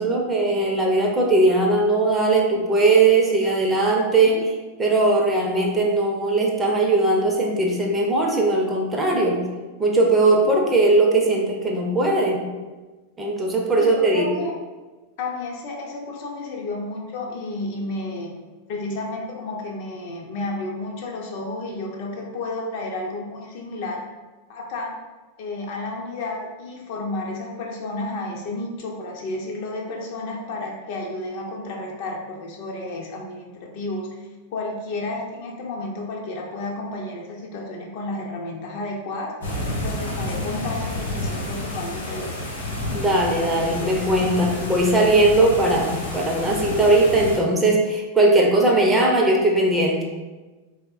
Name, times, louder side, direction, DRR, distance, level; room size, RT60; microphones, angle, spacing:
voice 1, 0.0-4.4 4.8-9.4 9.8-12.4 13.2-14.4 42.9-50.0, right 2 dB, 15° right, -1 dB, 0.5 m, -19 dB
voice 2, 13.8-14.5 15.2-18.4 18.7-24.0 24.5-24.9 25.4-34.1 34.5-39.3 39.7-42.3, left 2 dB, 50° left, 0 dB, 0.4 m, -31 dB
sound 1, 39.4-47.4, left 1 dB, 65° left, 0.9 m, -30 dB
3.3 x 2.0 x 2.4 m, 1.2 s
figure-of-eight pair, 90°, 0 cm